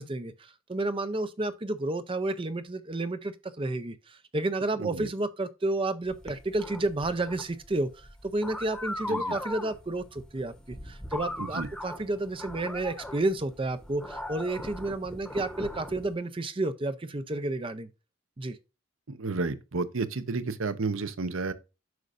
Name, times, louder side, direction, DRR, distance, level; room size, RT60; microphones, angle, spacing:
voice 1, 0.0-17.9 18.4-18.6, right 2 dB, 25° right, 0.5 m, -31 dB
sound 1, 6.1-16.1, left 1 dB, 5° left, 1.0 m, -39 dB
voice 2, 19.1-21.5, right 3 dB, 60° right, 0.8 m, -31 dB
9.3 x 6.3 x 2.5 m
head